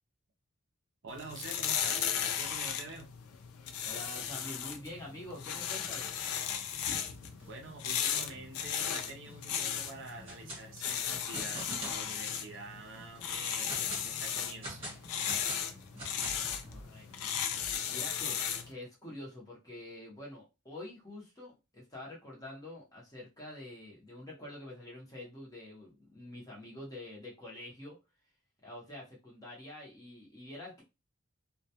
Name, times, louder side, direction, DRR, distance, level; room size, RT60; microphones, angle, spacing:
voice 1, 1.0-3.1 7.4-14.8, right 3 dB, 55° right, 3 dB, 0.6 m, -47 dB
sound 1, 1.1-18.7, left 8 dB, 85° left, 0.4 m, -36 dB
voice 2, 3.8-6.1 16.7-17.4 17.9-28.0 28.6-30.8, left 1 dB, 15° left, -3 dB, 0.7 m, -47 dB
sound 2, 4.9-17.8, equal, 10° right, 0.3 m, -57 dB
sound 3, 10.1-10.6 10.9-12.0 12.5-12.6 13.2-14.1 14.6-16.5, right 1 dB, 25° right, 0.9 m, -43 dB
2.1 x 2.1 x 2.8 m, 0.27 s
head